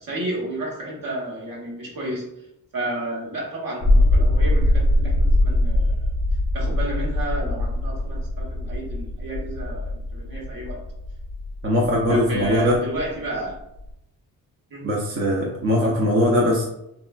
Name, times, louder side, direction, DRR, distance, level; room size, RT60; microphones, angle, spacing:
voice 1, 0.0-2.3 2.7-6.1 6.5-10.8 12.1-13.6 14.7-14.9 15.8-16.0, right 1 dB, 60° right, -3 dB, 1.0 m, -31 dB
sound 1, 3.8-13.9, left 1 dB, 45° left, 0.6 m, -22 dB
voice 2, 11.6-12.8 14.8-16.6, left 1 dB, 35° right, -3 dB, 0.5 m, -20 dB
3.1 x 2.4 x 2.3 m, 0.82 s
cardioid pair, 110°, 38 cm